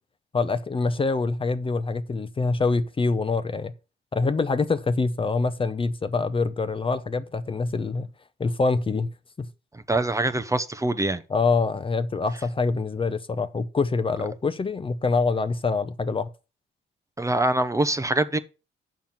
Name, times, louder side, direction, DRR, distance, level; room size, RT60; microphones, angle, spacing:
voice 1, 0.3-3.7 4.1-8.1 8.4-9.1 9.4-9.5 11.3-16.3, left 4 dB, 25° left, 0.7 m, -25 dB
voice 2, 9.7-11.2 17.2-18.4, right 2 dB, 15° right, 0.7 m, -24 dB
7.2 x 5.9 x 7.3 m
cardioid pair, 90°, 20 cm